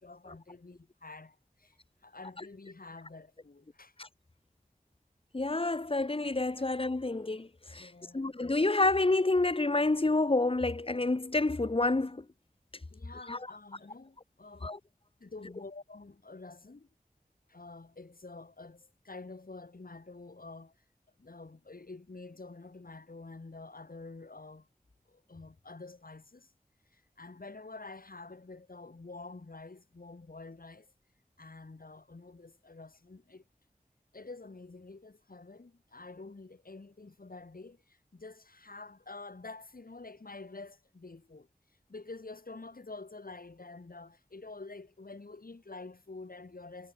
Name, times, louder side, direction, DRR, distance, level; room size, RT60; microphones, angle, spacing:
voice 1, 0.0-1.8 2.0-3.9 7.8-8.3 12.9-14.7 15.2-16.9 17.5-20.7 21.2-24.7 25.1-26.5 26.9-30.9 31.4-33.4 34.1-41.5 41.9-46.9, left 3 dB, 75° left, 3.5 m, -48 dB
voice 2, 5.3-7.9 8.1-12.2 13.3-13.4 14.6-14.8, left 2 dB, 40° left, 0.9 m, -28 dB
wide cardioid pair, 50°, 15 cm